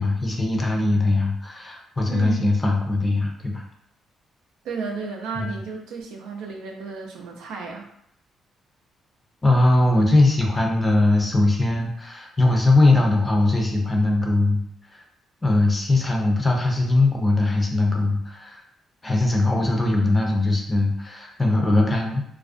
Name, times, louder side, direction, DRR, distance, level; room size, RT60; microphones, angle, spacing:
voice 1, 0.0-3.6 5.4-5.5 9.4-14.6 14.9-15.0 15.4-18.6 19.0-22.2, left 2 dB, 20° left, 1 dB, 0.5 m, -20 dB
voice 2, 2.1-2.5 4.6-7.9, right 5 dB, 90° right, 1 dB, 0.4 m, -32 dB
2.4 x 2.1 x 2.5 m, 0.69 s
cardioid pair, 90°, 0 cm